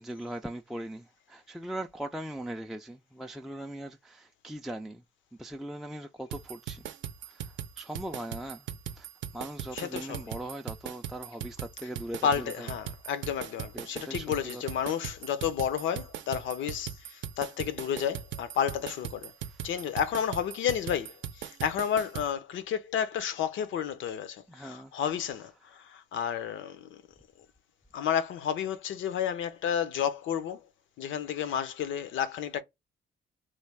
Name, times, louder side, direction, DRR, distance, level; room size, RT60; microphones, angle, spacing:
voice 1, 0.0-5.0 5.4-6.9 7.3-8.6 9.0-9.1 9.3-12.7 13.7-14.6 19.4-19.7 24.5-24.9, right 1 dB, ahead, 0.3 m, -40 dB
sound 1, 6.3-22.3, right 10 dB, 70° right, 0.5 m, -39 dB
voice 2, 9.7-10.3 12.2-19.3 19.6-27.0 27.9-30.6 31.0-32.6, left 8 dB, 75° left, 0.6 m, -31 dB
3.2 x 2.2 x 3.3 m
cardioid pair, 90°, 20 cm